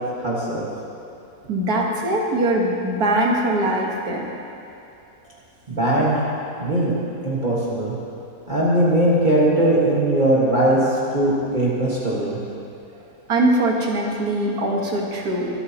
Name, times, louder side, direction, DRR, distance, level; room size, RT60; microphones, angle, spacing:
voice 1, 0.2-0.7 5.7-6.2 6.6-6.9 7.2-7.9 8.5-12.4, right 1 dB, 30° right, -7 dB, 1.8 m, -20 dB
voice 2, 1.5-4.2 13.3-15.5, right 1 dB, 80° right, -1 dB, 2.0 m, -21 dB
25.0 x 8.5 x 3.0 m, 2.7 s
omnidirectional pair, 1.6 m